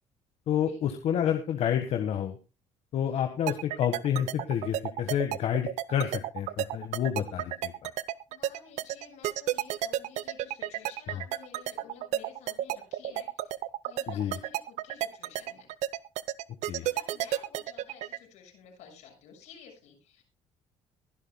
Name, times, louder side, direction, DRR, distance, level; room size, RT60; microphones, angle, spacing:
voice 1, 0.5-2.4 2.9-7.9 14.1-14.4 16.7-16.9, left 9 dB, 65° left, 7 dB, 1.5 m, -29 dB
sound 1, 3.5-18.2, right 13 dB, 80° right, 0.7 m, -31 dB
voice 2, 8.3-15.7 16.8-20.2, left 7 dB, 85° left, 1 dB, 6.9 m, -52 dB
22.0 x 11.5 x 2.2 m, 0.27 s
cardioid pair, 115°, 12 cm